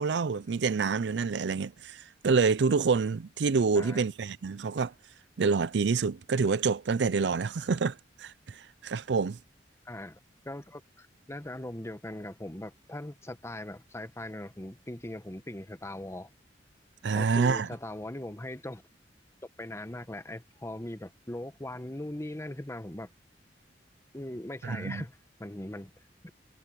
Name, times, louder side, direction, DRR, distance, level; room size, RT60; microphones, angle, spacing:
voice 1, 0.0-4.9 5.4-9.4 17.0-17.7 24.6-25.0, right 5 dB, 70° right, 0.5 m, -27 dB
voice 2, 9.8-10.2 10.4-16.3 17.1-18.8 19.6-23.1 24.1-25.1 25.4-25.9 26.2-26.3, left 1 dB, 15° left, 1.1 m, -40 dB
head